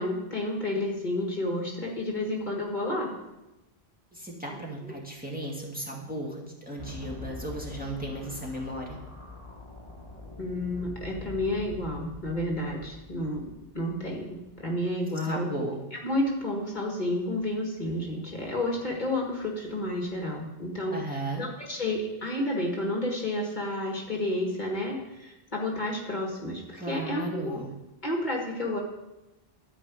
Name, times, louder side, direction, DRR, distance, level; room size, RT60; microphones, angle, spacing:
voice 1, 0.0-3.1 4.8-4.9 10.4-13.4 13.7-15.5 15.9-27.6 28.0-28.8, left 1 dB, 45° left, 0 dB, 1.9 m, -31 dB
voice 2, 4.1-9.0 15.2-15.8 20.9-21.5 26.7-27.7, right 1 dB, 10° right, -3 dB, 2.1 m, -35 dB
sound 1, 6.8-14.8, left 2 dB, 30° left, 1.4 m, -44 dB
12.5 x 5.0 x 8.4 m, 0.98 s
omnidirectional pair, 1.0 m